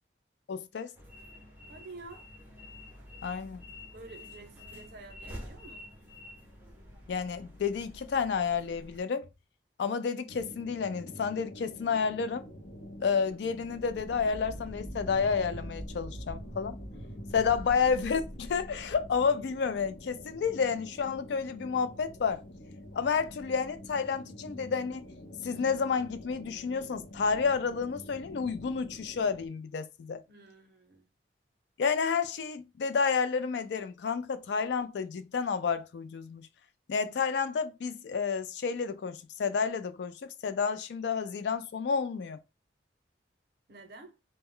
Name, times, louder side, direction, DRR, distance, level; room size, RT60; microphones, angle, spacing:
voice 1, 0.5-0.9 3.2-3.6 7.1-9.3 9.8-12.4 13.0-16.8 17.3-22.4 22.9-25.0 25.4-30.2 31.8-36.5 36.9-42.4, left 5 dB, 70° left, 0.3 m, -30 dB
sound 1, 0.9-9.0, left 1 dB, 10° right, 0.6 m, -48 dB
voice 2, 1.7-2.2 3.9-5.9 17.3-17.5 30.3-31.1 43.7-44.1, right 3 dB, 60° right, 0.6 m, -49 dB
sound 2, 10.3-29.5, left 1 dB, 90° left, 0.8 m, -48 dB
sound 3, 13.6-20.0, equal, 50° left, 1.0 m, -44 dB
2.1 x 2.0 x 3.7 m
head